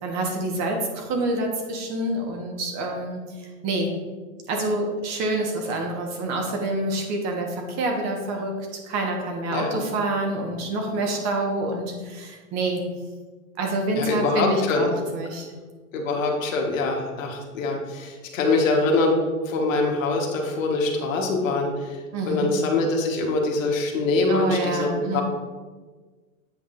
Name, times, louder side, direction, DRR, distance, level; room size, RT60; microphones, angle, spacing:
voice 1, 0.0-3.9 4.5-8.6 8.8-12.8 13.6-15.5 22.1-22.5 24.3-25.2, right 2 dB, 40° right, 1 dB, 1.4 m, -27 dB
voice 2, 14.0-14.9 15.9-19.2 19.4-22.0 22.3-25.2, left 3 dB, 70° left, 0 dB, 1.4 m, -24 dB
8.1 x 5.4 x 2.6 m, 1.4 s
hypercardioid pair, 110°, 41 cm